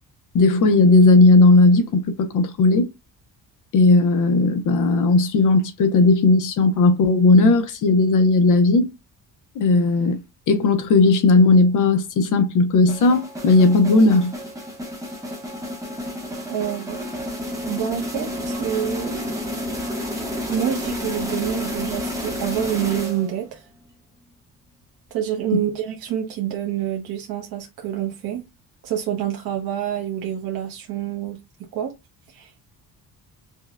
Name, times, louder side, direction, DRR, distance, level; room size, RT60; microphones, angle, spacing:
voice 1, 0.3-2.9 3.7-8.9 9.6-10.2 10.5-14.3, left 3 dB, 55° left, 0.6 m, -16 dB
sound 1, 12.9-23.5, left 1 dB, 10° right, 0.7 m, -30 dB
voice 2, 16.5-17.0 17.7-19.3 20.5-23.6 25.1-28.5 28.8-31.4 31.7-31.9 32.3-32.5, right 10 dB, 75° right, 0.8 m, -27 dB
5.2 x 2.1 x 2.4 m
cardioid pair, 175°, 38 cm